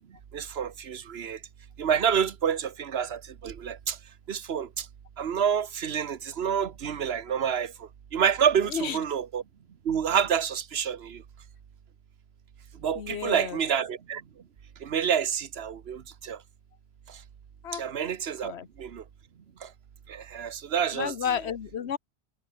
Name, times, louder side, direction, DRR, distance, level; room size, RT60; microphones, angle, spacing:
voice 1, 0.3-1.4 1.8-4.0 4.3-4.9 5.2-9.4 9.8-11.2 12.8-14.2 14.8-16.4 17.1-17.2 17.7-18.5 18.8-19.0 19.6-19.7 20.1-21.4, right 8 dB, 70° right, 1.3 m, -28 dB
voice 2, 13.0-13.6 17.6-17.8 18.4-18.7 20.9-22.0, left 8 dB, 80° left, 1.2 m, -31 dB
omnidirectional pair, 1.1 m